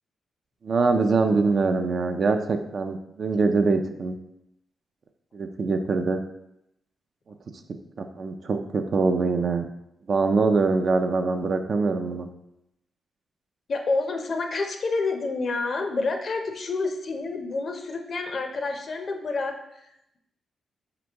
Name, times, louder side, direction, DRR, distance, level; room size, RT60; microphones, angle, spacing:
voice 1, 0.6-4.2 5.3-6.2 8.0-9.7 10.1-12.3, right 4 dB, 55° right, 6 dB, 0.4 m, -23 dB
voice 2, 13.7-20.2, left 3 dB, 55° left, 4 dB, 0.5 m, -29 dB
4.2 x 2.9 x 3.4 m, 0.82 s
cardioid pair, 80°, 0 cm